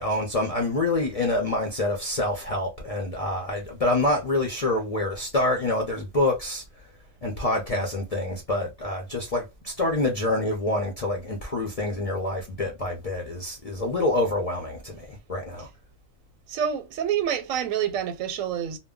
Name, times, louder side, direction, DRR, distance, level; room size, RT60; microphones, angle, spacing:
voice 1, 0.0-6.6 7.2-15.7, left 2 dB, 50° left, 0.4 m, -26 dB
voice 2, 16.5-18.8, right 9 dB, 90° right, 1.0 m, -27 dB
2.1 x 2.1 x 3.5 m
omnidirectional pair, 1.3 m